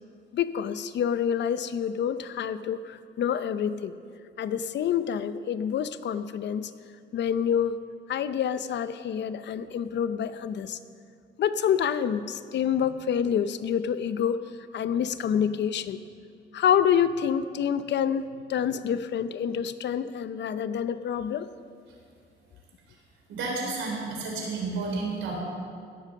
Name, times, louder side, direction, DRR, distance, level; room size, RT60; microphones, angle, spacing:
voice 1, 0.3-3.9 4.4-6.7 7.1-7.8 8.1-10.8 11.4-14.4 14.7-16.0 16.5-21.5, left 8 dB, 60° left, 13 dB, 0.7 m, -27 dB
voice 2, 23.3-25.4, right 3 dB, 80° right, -1 dB, 4.0 m, -31 dB
17.0 x 7.5 x 6.6 m, 2.3 s
cardioid pair, 90°, 20 cm